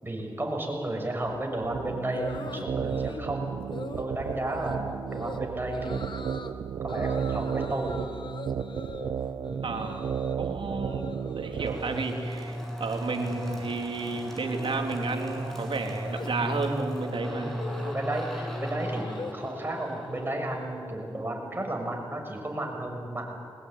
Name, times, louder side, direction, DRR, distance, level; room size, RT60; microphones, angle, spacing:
voice 1, 0.0-3.7 4.0-6.2 6.8-8.0 9.5-9.6 17.3-23.3, right 1 dB, 25° right, 1 dB, 6.9 m, -33 dB
sound 1, 1.2-12.0, right 7 dB, 85° right, 0.8 m, -33 dB
sound 2, 2.1-3.3 3.7-4.1 4.5-4.8 5.1-5.4 5.7-6.5 6.9-10.4 10.6-11.9 12.2-12.7 12.9-21.1, left 3 dB, 55° left, 1.8 m, -43 dB
voice 2, 9.6-10.0 10.4-11.0 11.3-18.0, right 3 dB, 70° right, 3 dB, 3.3 m, -32 dB
sound 3, 11.5-21.1, equal, 5° left, 7.6 m, -36 dB
22.5 x 20.0 x 9.5 m, 2.4 s
cardioid pair, 50°, 9 cm